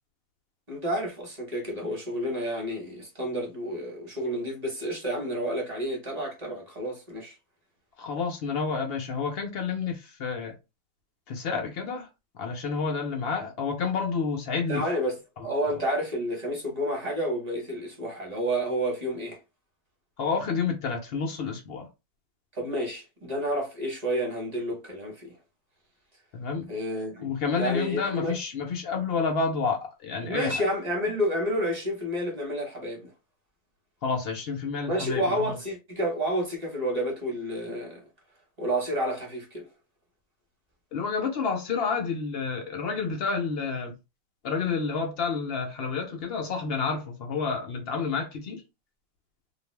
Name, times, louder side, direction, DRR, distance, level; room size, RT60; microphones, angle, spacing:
voice 1, 0.7-7.3 14.7-19.4 22.5-25.4 26.7-27.3 27.5-28.3 30.2-33.1 34.9-38.0 38.6-39.7, equal, 30° right, 1.0 m, -30 dB
voice 2, 8.0-10.5 11.3-12.1 12.3-14.8 15.4-15.5 15.7-15.8 20.2-21.9 26.3-26.7 27.2-30.7 34.0-35.6 40.9-44.0 44.4-48.6, left 5 dB, 90° left, 0.5 m, -29 dB
2.5 x 2.3 x 3.2 m
omnidirectional pair, 1.7 m